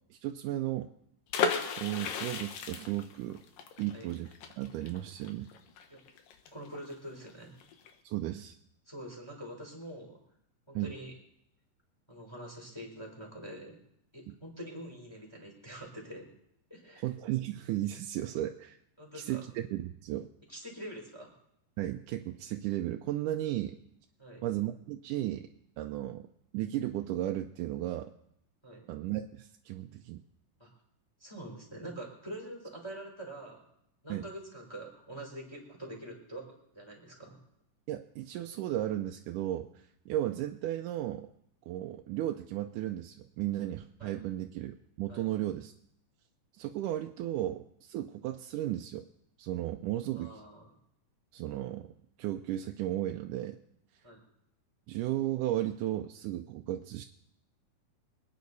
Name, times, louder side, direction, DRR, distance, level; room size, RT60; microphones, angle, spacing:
voice 1, 0.1-0.9 1.8-3.4 3.8-5.5 8.0-8.5 10.7-10.9 17.0-18.8 19.1-20.3 21.8-23.8 24.4-25.5 25.8-26.3 26.5-28.1 28.9-30.2 34.1-34.2 37.9-41.3 41.7-45.7 46.6-49.1 49.4-50.4 51.3-51.9 52.2-53.6 54.9-57.0, right 13 dB, 80° right, 4 dB, 2.1 m, -35 dB
sound 1, 1.3-6.9 7.2-7.3 7.6-7.9, left 6 dB, 85° left, 2.9 m, -35 dB
voice 2, 6.5-7.6 8.9-10.2 10.7-11.1 12.1-13.8 14.1-16.3 16.7-17.0 19.0-19.4 20.5-21.3 24.2-24.4 28.6-28.9 30.6-30.7 31.2-33.6 34.0-36.4 36.7-37.4 44.0-44.2 45.1-45.3 50.1-50.7 54.0-54.2, right 1 dB, 5° left, 0 dB, 3.9 m, -45 dB
25.5 x 9.5 x 4.1 m, 0.76 s
omnidirectional pair, 3.8 m